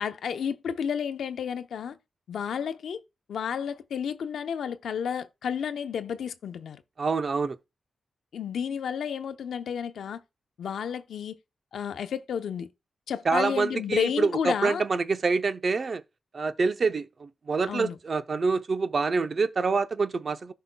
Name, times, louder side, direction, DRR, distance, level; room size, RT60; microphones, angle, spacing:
voice 1, 0.0-2.0 2.3-3.0 3.3-6.8 8.3-10.2 10.6-11.4 11.7-12.7 13.1-14.8 17.7-18.0, left 7 dB, 85° left, 0.7 m, -31 dB
voice 2, 7.0-7.6 13.2-16.0 16.3-20.5, right 4 dB, 45° right, 0.6 m, -26 dB
15.0 x 5.6 x 2.2 m
wide cardioid pair, 100°, 0 cm